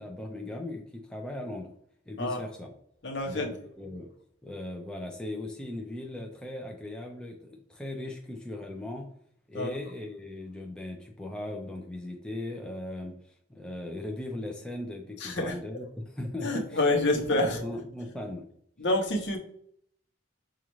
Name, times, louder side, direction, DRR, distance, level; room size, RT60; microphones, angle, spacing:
voice 1, 0.0-1.7 2.1-2.7 3.2-4.1 4.4-9.1 9.5-13.1 13.5-16.8 17.1-18.4, left 1 dB, 5° left, 0 dB, 0.5 m, -38 dB
voice 2, 3.0-3.5 9.5-9.7 15.2-15.6 16.4-17.6 18.8-19.4, left 2 dB, 65° left, 1 dB, 0.9 m, -27 dB
5.2 x 2.4 x 3.0 m, 0.66 s
head